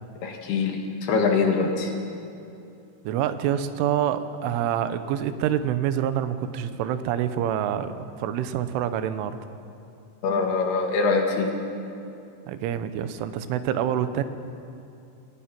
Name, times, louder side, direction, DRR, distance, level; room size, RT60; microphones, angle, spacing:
voice 1, 0.2-1.9 10.2-11.5, left 4 dB, 60° left, 2 dB, 3.5 m, -23 dB
voice 2, 3.0-9.4 12.5-14.2, right 10 dB, 85° right, 11 dB, 3.4 m, -26 dB
28.0 x 20.5 x 6.0 m, 2.7 s
omnidirectional pair, 5.5 m